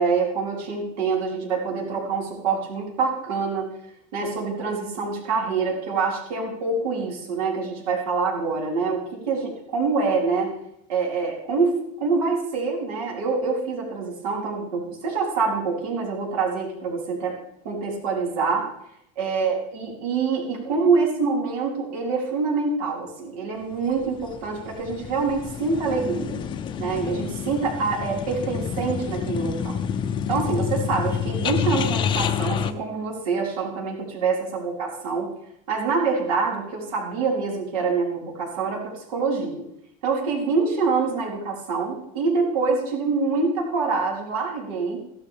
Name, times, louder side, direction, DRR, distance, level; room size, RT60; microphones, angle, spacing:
voice 1, 0.0-3.7 4.1-10.5 10.9-11.7 12.0-17.4 17.6-18.7 19.1-26.4 26.8-29.7 30.3-35.3 35.7-39.6 40.0-45.0, right 4 dB, 85° right, -3 dB, 5.0 m, -25 dB
sound 1, 23.8-32.7, left 8 dB, 25° left, 0.6 m, -28 dB
15.5 x 12.5 x 3.5 m, 0.78 s
cardioid pair, 155°, 18 cm